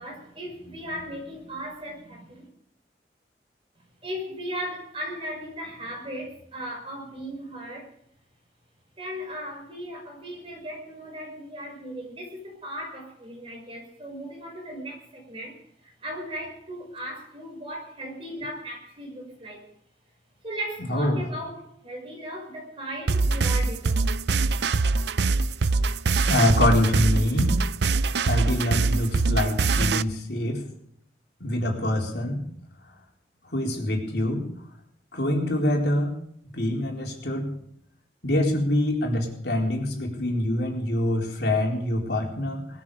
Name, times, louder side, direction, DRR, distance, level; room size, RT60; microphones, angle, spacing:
voice 1, 0.0-2.5 3.8-7.9 9.0-19.7 20.4-24.1, equal, 30° right, 0 dB, 6.0 m, -37 dB
voice 2, 20.9-21.2 26.3-27.6 28.2-30.6 31.4-32.5 33.5-34.4 35.1-36.1 36.5-37.5 38.2-42.7, left 1 dB, 70° left, 0 dB, 4.2 m, -25 dB
sound 1, 23.1-30.0, right 3 dB, 75° right, 0.5 m, -23 dB
20.0 x 13.5 x 5.1 m, 0.70 s
head